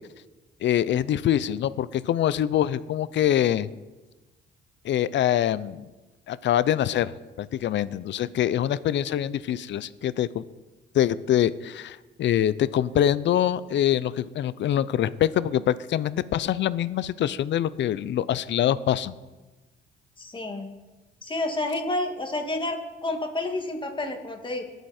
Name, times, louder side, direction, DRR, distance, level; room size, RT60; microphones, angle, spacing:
voice 1, 0.6-3.7 4.8-5.9 6.3-10.4 10.9-19.1, left 11 dB, 65° left, 17 dB, 0.6 m, -24 dB
voice 2, 20.2-20.7 21.2-24.6, left 2 dB, 25° left, 3 dB, 2.2 m, -30 dB
20.5 x 8.2 x 4.4 m, 1.2 s
cardioid pair, 90°, 20 cm